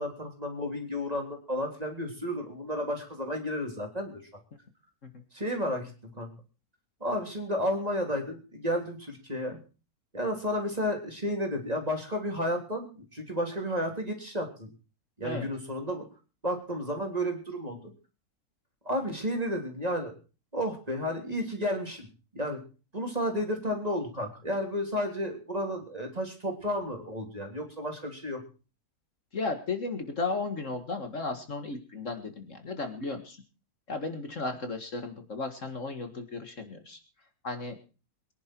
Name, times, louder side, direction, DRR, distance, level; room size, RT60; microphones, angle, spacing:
voice 1, 0.0-4.2 5.3-5.9 6.2-6.3 7.0-9.6 10.1-14.7 15.2-16.0 16.4-17.8 18.9-20.1 20.5-22.1 22.3-22.6 22.9-28.4, equal, 25° right, 2 dB, 3.4 m, -32 dB
voice 2, 29.3-33.4 33.9-37.0 37.4-37.8, left 3 dB, 55° left, 7 dB, 2.1 m, -34 dB
23.0 x 10.5 x 4.6 m, 0.35 s
omnidirectional pair, 1.6 m